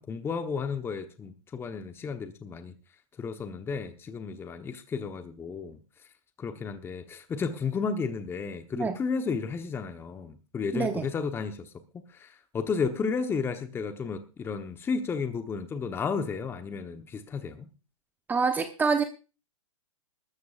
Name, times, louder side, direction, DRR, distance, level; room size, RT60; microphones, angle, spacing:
voice 1, 0.1-2.7 3.2-5.8 6.4-11.7 12.1-17.7, left 5 dB, 15° left, 1.1 m, -33 dB
voice 2, 10.7-11.1 18.3-19.0, right 5 dB, 10° right, 0.9 m, -26 dB
20.5 x 13.5 x 2.5 m
hypercardioid pair, 130°, 17 cm